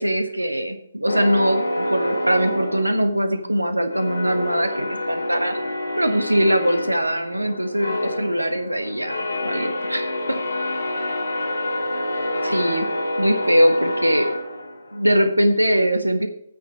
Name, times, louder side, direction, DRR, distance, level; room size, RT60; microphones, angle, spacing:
voice 1, 0.0-5.6 5.9-9.2 9.4-10.4 12.4-12.8 13.2-14.3 14.9-16.3, equal, 85° right, 8 dB, 1.3 m, -21 dB
sound 1, 1.1-3.5 3.9-15.1, left 1 dB, 70° left, 2.4 m, -27 dB
9.1 x 6.5 x 7.3 m, 0.71 s
figure-of-eight pair, 135°, 0 cm